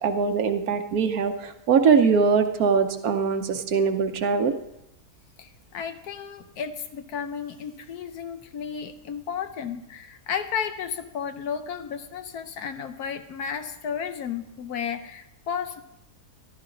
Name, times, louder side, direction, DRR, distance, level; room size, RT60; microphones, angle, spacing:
voice 1, 0.0-4.6, right 5 dB, 65° right, 7 dB, 1.3 m, -22 dB
voice 2, 5.4-15.8, left 7 dB, 70° left, 9 dB, 1.3 m, -33 dB
14.0 x 12.0 x 3.8 m, 0.83 s
omnidirectional pair, 1.7 m